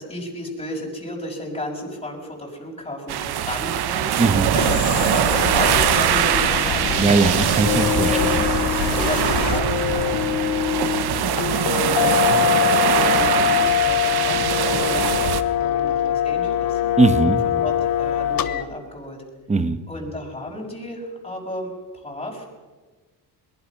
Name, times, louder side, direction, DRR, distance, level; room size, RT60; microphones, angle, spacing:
voice 1, 0.0-7.0 8.1-8.3 8.9-10.7 11.6-12.2 12.9-16.8 17.2-17.3 17.6-19.2 19.9-22.5, left 1 dB, 15° left, 0 dB, 6.0 m, -33 dB
sound 1, 3.1-15.4, right 11 dB, 65° right, 1.1 m, -22 dB
sound 2, 4.5-9.6, left 14 dB, 75° left, 0.7 m, -28 dB
voice 2, 7.0-8.4 17.0-17.4 19.5-19.8, right 3 dB, 15° right, 10 dB, 1.3 m, -19 dB
sound 3, 7.6-18.6, left 11 dB, 55° left, 1.2 m, -22 dB
23.0 x 20.5 x 6.1 m, 1.3 s
cardioid pair, 120°, 41 cm